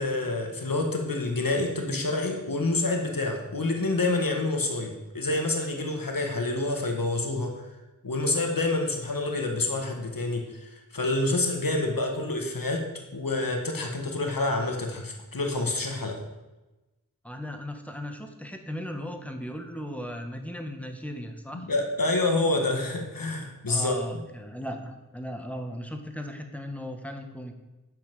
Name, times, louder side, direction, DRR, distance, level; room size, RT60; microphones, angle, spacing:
voice 1, 0.0-7.5 8.0-12.9 13.1-16.2 21.5-24.2, left 2 dB, 85° left, 2 dB, 1.7 m, -28 dB
voice 2, 17.2-21.7 23.6-27.5, equal, 5° left, 4 dB, 1.6 m, -37 dB
10.0 x 5.9 x 7.6 m, 1.1 s
wide cardioid pair, 40°, 33 cm